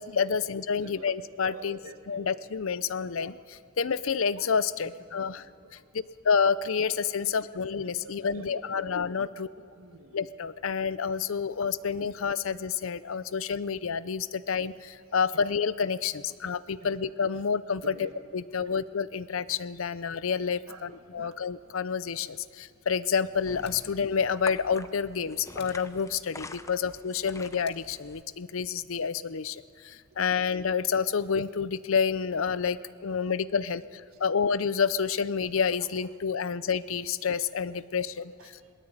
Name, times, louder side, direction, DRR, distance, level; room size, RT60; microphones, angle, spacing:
voice 1, 0.0-1.8 2.1-5.4 5.9-9.5 10.1-38.3, left 6 dB, 65° left, 17 dB, 0.6 m, -29 dB
voice 2, 0.7-1.1 1.5-2.4 2.7-2.8 4.8-5.7 6.9-7.6 8.0-9.1 9.6-10.2 15.3-15.4 16.8-16.9 17.8-18.1 18.5-18.6 20.7-21.4 26.3-26.4 26.7-26.8 27.2-27.5 30.2-30.4 33.0-33.4 35.8-35.9 37.7-37.8 38.2-38.7, right 2 dB, 90° right, 7 dB, 1.7 m, -49 dB
sound 1, 23.1-28.2, left 2 dB, 15° left, 0.7 m, -46 dB
sound 2, 23.6-23.9 25.6-25.8 27.6-27.9, left 7 dB, 50° left, 2.1 m, -52 dB
21.0 x 18.5 x 8.8 m, 2.3 s
head